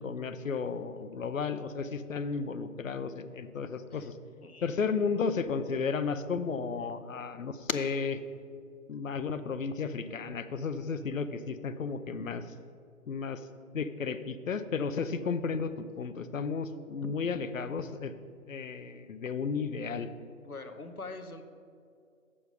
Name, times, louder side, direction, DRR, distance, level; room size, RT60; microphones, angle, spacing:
voice 1, 0.0-4.2 4.6-8.2 8.9-12.5 13.1-13.5 13.7-18.1 18.5-20.1, left 5 dB, 65° left, 12 dB, 0.7 m, -33 dB
voice 2, 20.4-21.4, left 3 dB, 90° left, 7 dB, 1.0 m, -44 dB
7.9 x 7.0 x 5.1 m, 2.3 s
figure-of-eight pair, 140°, 43 cm